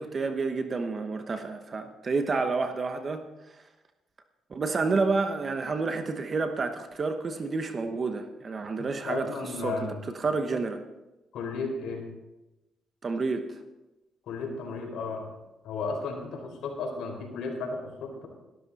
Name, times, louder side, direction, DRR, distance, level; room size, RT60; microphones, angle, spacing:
voice 1, 0.0-3.2 4.5-10.8 13.0-13.6, right 4 dB, 40° right, 7 dB, 1.0 m, -29 dB
voice 2, 8.8-10.0 11.3-12.0 14.3-15.2 15.6-18.3, left 4 dB, 75° left, 0 dB, 4.2 m, -34 dB
14.0 x 12.5 x 4.1 m, 1.0 s
cardioid pair, 90°, 0 cm